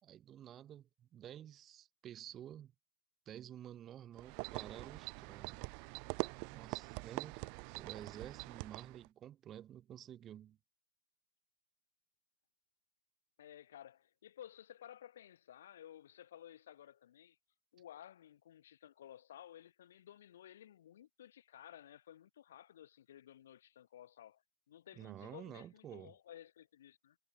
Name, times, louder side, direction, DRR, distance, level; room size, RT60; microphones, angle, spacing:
voice 1, 0.0-2.7 3.3-5.7 6.4-7.4 7.8-10.6 25.0-26.1, right 11 dB, 20° right, 2.3 m, -51 dB
sound 1, 4.2-9.1, right 40 dB or more, 35° right, 0.9 m, -44 dB
voice 2, 13.4-17.4 17.7-27.2, left 11 dB, 70° left, 2.2 m, -56 dB
supercardioid pair, 160°, 0 cm